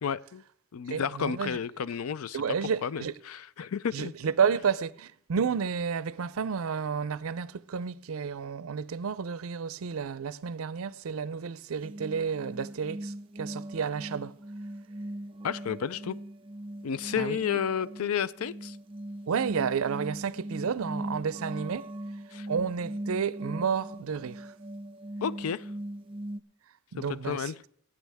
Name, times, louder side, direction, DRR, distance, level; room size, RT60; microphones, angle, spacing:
voice 1, 0.0-0.4 0.7-4.1 15.4-16.2 16.8-18.8 22.3-22.5 25.2-25.7 27.0-27.6, left 7 dB, 90° left, 0.4 m, -32 dB
voice 2, 0.9-1.6 2.3-3.1 3.9-14.3 17.2-17.4 19.3-21.9 22.5-24.5 26.9-27.7, right 6 dB, 80° right, 0.5 m, -31 dB
sound 1, 11.8-26.4, right 1 dB, 25° right, 0.4 m, -40 dB
19.0 x 8.7 x 3.4 m
head